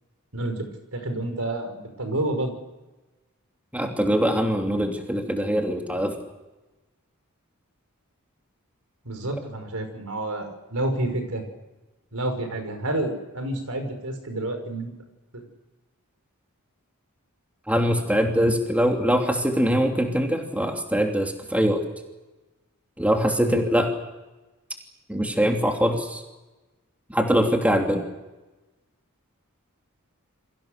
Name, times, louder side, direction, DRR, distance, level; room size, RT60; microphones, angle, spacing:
voice 1, 0.3-0.7 0.9-2.5 9.0-11.4 12.1-14.9 15.3-15.4 23.4-23.6, right 1 dB, 70° right, 6 dB, 5.8 m, -29 dB
voice 2, 3.7-6.1 17.7-21.8 23.0-23.9 25.1-26.2 27.1-28.0, equal, 5° right, 2 dB, 2.9 m, -23 dB
29.0 x 23.5 x 6.7 m, 1.1 s
head